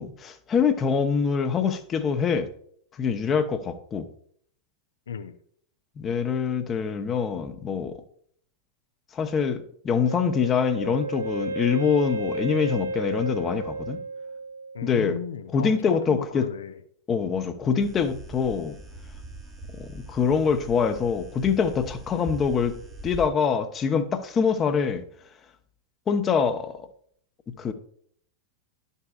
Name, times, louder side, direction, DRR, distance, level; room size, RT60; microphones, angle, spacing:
voice 1, 0.0-2.5 3.0-4.1 6.0-8.0 9.1-14.0 14.8-15.1 15.5-16.5 17.1-18.8 19.8-22.8 23.0-25.0 26.1-26.9 27.6-27.7, left 6 dB, 25° left, 0.8 m, -25 dB
voice 2, 5.1-5.4 14.7-16.8, left 7 dB, 65° left, 0.5 m, -34 dB
Wind instrument woodwind instrument, 10.0-14.9, right 2 dB, 75° right, 0.6 m, -32 dB
sound 1, 17.8-23.3, right 2 dB, 15° right, 0.9 m, -42 dB
11.5 x 5.5 x 2.4 m
figure-of-eight pair, 90°, 0 cm